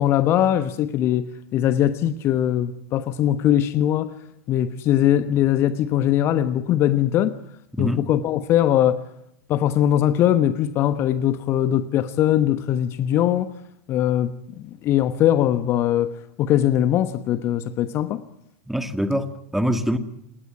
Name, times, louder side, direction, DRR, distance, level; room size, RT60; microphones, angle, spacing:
voice 1, 0.0-4.1 4.5-7.4 7.8-9.0 9.5-13.5 13.9-18.2, left 11 dB, 40° left, 1.2 m, -21 dB
voice 2, 18.7-20.0, equal, 5° right, 2.2 m, -24 dB
29.0 x 18.0 x 9.9 m
figure-of-eight pair, 90°, 7 cm